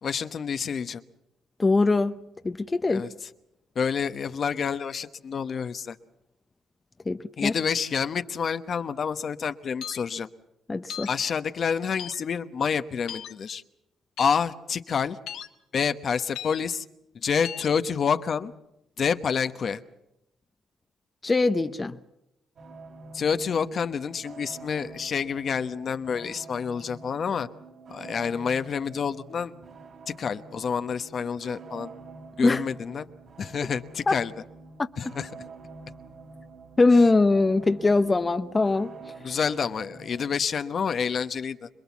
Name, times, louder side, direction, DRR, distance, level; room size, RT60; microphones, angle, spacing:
voice 1, 0.0-1.0 2.9-3.1 3.7-6.0 7.4-10.3 11.1-13.6 14.2-15.2 15.7-16.8 17.2-18.5 19.0-19.8 23.1-27.5 27.9-29.5 30.2-31.9 32.4-33.1 33.4-34.3 35.0-35.3 39.2-41.7, left 6 dB, 50° left, 10 dB, 1.0 m, -28 dB
voice 2, 1.6-2.1 2.4-3.0 7.1-7.5 10.7-11.1 21.2-22.0 32.4-32.6 34.1-34.2 34.8-34.9 36.8-38.9, left 3 dB, 25° left, 9 dB, 0.8 m, -22 dB
sound 1, 9.8-10.0 10.9-11.1 12.0-12.2 13.1-13.3 14.2-14.4 15.3-15.5 16.3-16.6 17.4-17.7, left 10 dB, 80° left, 1.5 m, -37 dB
sound 2, 22.6-40.4, right 3 dB, 55° right, 3.7 m, -46 dB
26.5 x 21.0 x 7.2 m, 0.87 s
cardioid pair, 90°, 0 cm